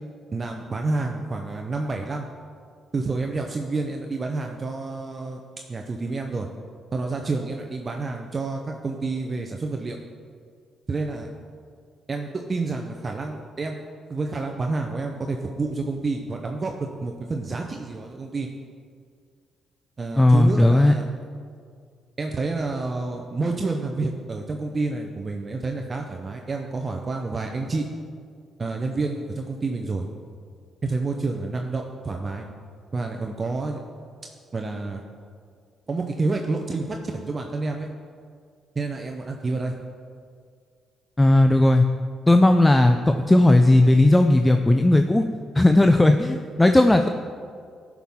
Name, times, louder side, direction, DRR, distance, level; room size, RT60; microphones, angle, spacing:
voice 1, 0.3-2.3 2.9-5.4 5.7-6.5 6.9-10.0 10.9-11.3 12.1-13.8 14.1-18.5 20.0-21.1 22.2-27.9 28.6-30.1 30.8-32.4 32.9-33.8 34.5-35.0 35.9-37.9 38.8-39.7, right 3 dB, 35° right, 2 dB, 0.7 m, -29 dB
voice 2, 20.2-20.9 41.2-41.9 42.3-45.2 45.6-47.1, left 1 dB, 10° left, 6 dB, 0.4 m, -16 dB
13.0 x 6.0 x 3.6 m, 2.1 s
cardioid pair, 90°, 0 cm